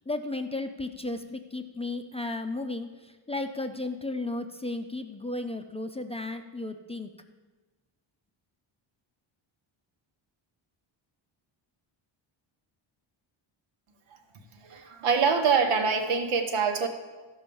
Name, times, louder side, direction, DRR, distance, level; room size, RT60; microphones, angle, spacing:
voice 1, 0.1-7.1, left 2 dB, 15° left, 6 dB, 0.5 m, -34 dB
voice 2, 14.5-16.9, right 5 dB, 90° right, 4 dB, 1.5 m, -25 dB
13.5 x 5.5 x 7.0 m, 1.3 s
cardioid pair, 130°, 49 cm